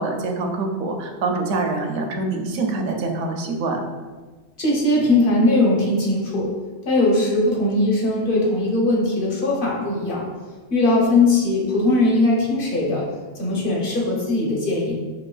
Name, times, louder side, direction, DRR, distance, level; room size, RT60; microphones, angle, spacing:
voice 1, 0.0-3.8, right 3 dB, 75° right, 3 dB, 0.9 m, -25 dB
voice 2, 4.6-6.5 6.8-10.2 10.7-13.0 13.4-14.9, left 2 dB, 45° left, -3 dB, 0.9 m, -20 dB
5.2 x 2.8 x 2.3 m, 1.3 s
omnidirectional pair, 1.4 m